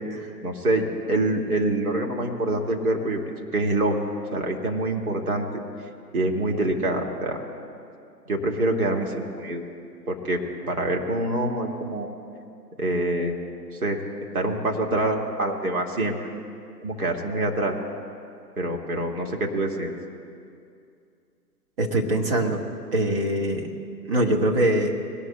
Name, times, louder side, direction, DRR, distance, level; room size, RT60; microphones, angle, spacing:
voice 1, 0.4-4.0 4.3-5.5 6.1-7.4 8.3-9.6 10.1-12.1 12.8-13.4 13.8-14.0 14.3-16.2 16.8-17.8 18.6-19.9, right 1 dB, 60° right, 1 dB, 2.1 m, -25 dB
voice 2, 21.8-22.6 22.9-23.7 24.1-24.9, right 1 dB, 35° right, 1 dB, 1.6 m, -23 dB
21.0 x 17.5 x 2.2 m, 2.4 s
figure-of-eight pair, 135°, 50 cm